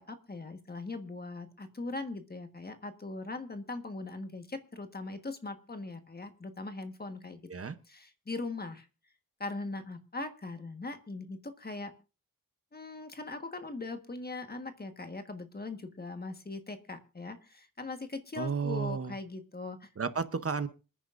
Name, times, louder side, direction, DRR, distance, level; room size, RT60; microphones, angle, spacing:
voice 1, 0.0-7.4 7.9-8.9 9.4-11.9 12.7-19.9, left 3 dB, 30° left, 7 dB, 1.4 m, -40 dB
voice 2, 18.4-19.1 20.0-20.7, right 5 dB, 45° right, 11 dB, 0.8 m, -32 dB
26.5 x 9.9 x 2.5 m, 0.33 s
wide cardioid pair, 160°, 34 cm